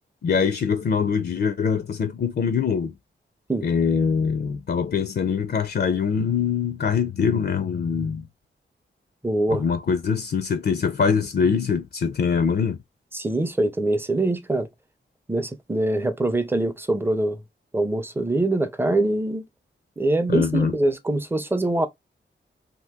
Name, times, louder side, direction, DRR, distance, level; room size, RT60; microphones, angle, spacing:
voice 1, 0.2-2.9 3.6-8.3 9.5-12.8 20.3-20.7, left 6 dB, 55° left, 0.5 m, -23 dB
voice 2, 9.2-9.6 13.1-14.7 15.3-17.4 17.7-19.4 20.0-21.9, right 2 dB, 10° right, 0.5 m, -23 dB
2.7 x 2.6 x 3.5 m
wide cardioid pair, 140°, 20 cm